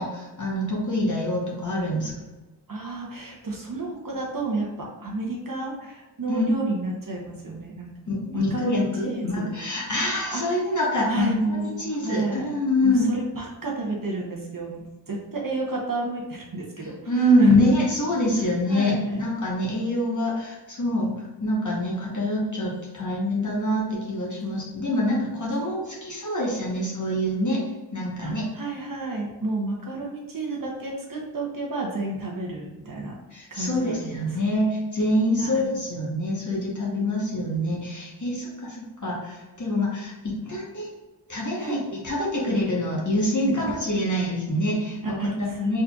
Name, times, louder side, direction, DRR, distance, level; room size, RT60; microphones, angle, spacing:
voice 1, 0.0-2.1 6.3-6.5 8.1-13.1 17.1-21.1 21.4-27.6 27.9-28.4 33.3-40.1 40.4-40.9 41.3-45.8, left 1 dB, 40° left, -3 dB, 1.1 m, -25 dB
voice 2, 2.7-7.9 8.3-9.5 10.3-10.4 11.1-12.5 12.8-17.6 18.3-19.2 28.2-33.1 33.5-34.4 35.4-35.7 41.6-41.8 45.0-45.8, right 2 dB, 45° right, -2 dB, 0.9 m, -31 dB
4.2 x 3.8 x 2.3 m, 1.1 s
cardioid pair, 60°, 45 cm